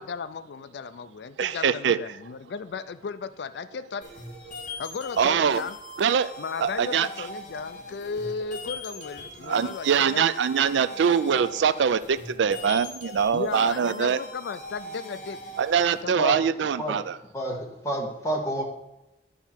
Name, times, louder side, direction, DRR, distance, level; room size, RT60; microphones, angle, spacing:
voice 1, 0.0-4.0 4.8-5.8 6.4-10.3 13.3-15.4 16.0-16.3, left 5 dB, 70° left, 13 dB, 0.4 m, -35 dB
voice 2, 1.4-2.0 5.2-5.6 6.0-6.3 6.6-7.1 9.4-14.2 15.6-17.2, right 7 dB, 85° right, 16 dB, 0.4 m, -23 dB
sound 1, 4.0-16.0, left 1 dB, 45° left, 1.2 m, -41 dB
voice 3, 17.3-18.6, right 1 dB, 15° left, -1 dB, 1.4 m, -29 dB
11.0 x 5.7 x 4.4 m, 0.93 s
head